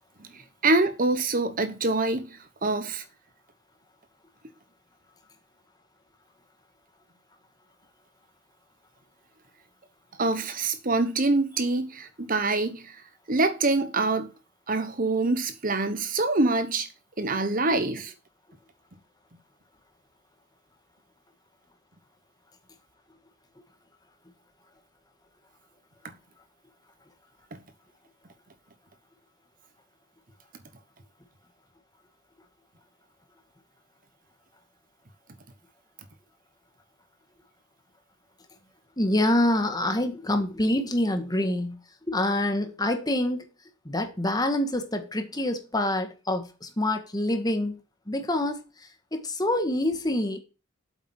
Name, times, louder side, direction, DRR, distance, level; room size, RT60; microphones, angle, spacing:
voice 1, 0.3-3.0 10.2-13.0 13.3-14.3 14.7-16.9 17.2-18.1, right 3 dB, 45° right, 1.0 m, -25 dB
voice 2, 39.0-41.8 42.1-43.5 43.8-50.4, left 1 dB, 20° left, 1.5 m, -26 dB
8.1 x 7.7 x 4.4 m
head